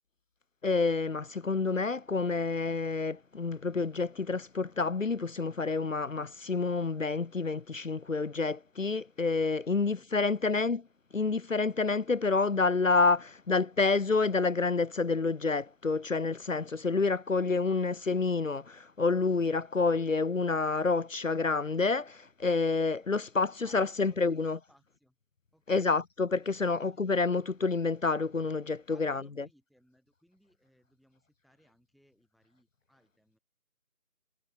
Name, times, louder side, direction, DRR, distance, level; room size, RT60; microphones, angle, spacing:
voice 1, 0.6-10.8 11.1-24.6 25.7-29.2, left 4 dB, 60° left, 0.7 m, -28 dB
voice 2, 23.6-25.2 25.5-26.0 26.4-27.0 28.9-33.4, equal, ahead, 4.0 m, -66 dB
figure-of-eight pair, 180°, 45 cm